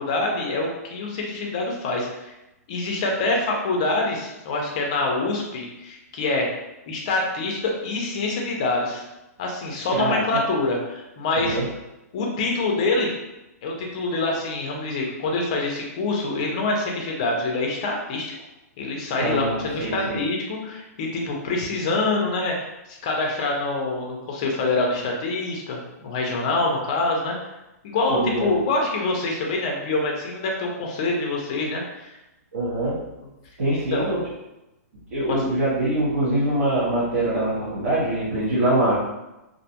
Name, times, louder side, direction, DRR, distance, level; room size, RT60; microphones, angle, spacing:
voice 1, 0.0-2.3 2.7-6.5 6.9-9.0 9.4-11.6 12.1-13.1 13.6-18.3 18.8-22.6 22.9-27.5 27.8-32.1 33.7-34.1, left 2 dB, 25° left, 0 dB, 0.4 m, -25 dB
voice 2, 10.0-10.4 11.4-11.7 19.2-20.2 28.1-28.6 32.5-33.0 33.6-34.2 35.1-39.1, right 1 dB, 60° right, -9 dB, 0.9 m, -24 dB
2.4 x 2.2 x 2.7 m, 0.96 s
hypercardioid pair, 180°, 9 cm